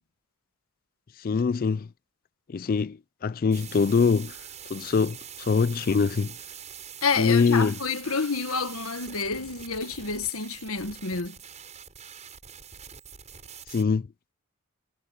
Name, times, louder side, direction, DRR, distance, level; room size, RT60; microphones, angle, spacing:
voice 1, 1.2-1.9 2.5-4.4 4.7-6.3 7.2-7.8 13.7-14.1, left 5 dB, 40° left, 0.3 m, -23 dB
sound 1, 3.5-13.8, right 8 dB, 30° right, 7.9 m, -44 dB
voice 2, 7.0-11.3, left 4 dB, 70° left, 1.6 m, -29 dB
head